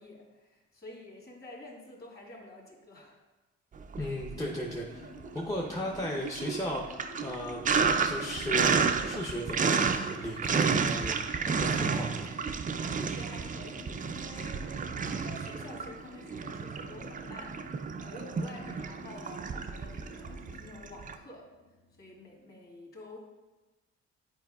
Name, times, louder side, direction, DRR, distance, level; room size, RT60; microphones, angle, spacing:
voice 1, 0.0-3.2 11.8-12.1 12.8-21.5 22.0-23.2, left 2 dB, 30° left, -3 dB, 2.0 m, -49 dB
Sink (filling or washing), 3.8-4.7 5.0-21.2, right 5 dB, 30° right, 0.4 m, -31 dB
voice 2, 4.0-6.8 7.2-7.6 8.0-8.8 9.0-11.2 11.5-12.3, left 1 dB, 10° left, -2 dB, 0.7 m, -36 dB
sound 1, 4.2-22.4, left 1 dB, 60° left, 1.0 m, -51 dB
9.1 x 4.6 x 2.3 m, 1.1 s
cardioid pair, 90°, 30 cm